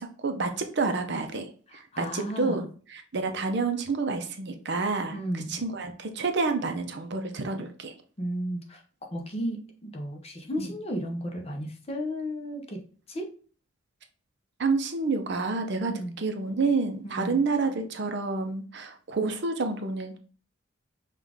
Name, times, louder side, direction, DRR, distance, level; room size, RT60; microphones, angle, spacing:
voice 1, 0.0-1.4 1.7-7.9 10.6-10.7 14.6-15.9 16.2-20.2, right 4 dB, 55° right, 6 dB, 0.6 m, -29 dB
voice 2, 1.7-2.7 5.1-5.6 8.2-8.8 9.1-12.8 13.1-13.3 15.9-16.1 17.0-17.4, equal, 30° left, 2 dB, 0.7 m, -34 dB
5.5 x 2.4 x 3.4 m, 0.41 s
head